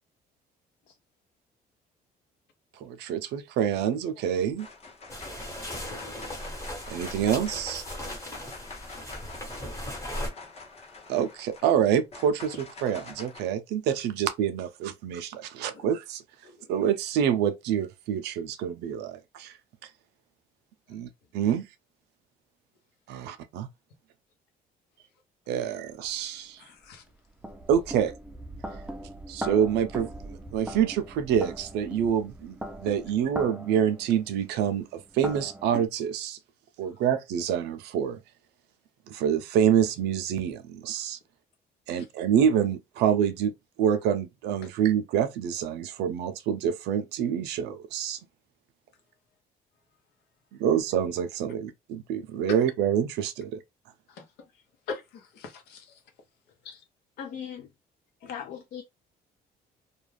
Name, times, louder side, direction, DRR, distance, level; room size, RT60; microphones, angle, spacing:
voice 1, 2.8-4.7 6.9-7.8 11.1-12.6 12.8-16.2 16.7-19.5 20.9-21.1 21.3-21.7 23.1-23.7 25.5-26.6 27.7-28.1 29.3-36.4 36.8-38.2 39.1-41.2 41.9-43.5 43.8-48.2 50.6-53.6, right 9 dB, 85° right, 0.4 m, -27 dB
sound 1, 3.9-4.2 4.6-13.4, left 4 dB, 40° left, 0.9 m, -46 dB
sound 2, 5.1-10.3, left 1 dB, 15° left, 1.1 m, -37 dB
sound 3, 26.0-26.1 26.8-35.9, right 1 dB, 5° right, 0.4 m, -40 dB
voice 2, 26.6-27.0 42.0-42.1 44.6-44.7 52.5-52.6 54.1-54.2 54.9-56.0 56.6-56.8 58.2-58.3, left 4 dB, 85° left, 0.8 m, -41 dB
voice 3, 57.2-57.7 58.2-58.8, left 8 dB, 55° left, 0.5 m, -38 dB
2.3 x 2.3 x 3.2 m
cardioid pair, 110°, 17 cm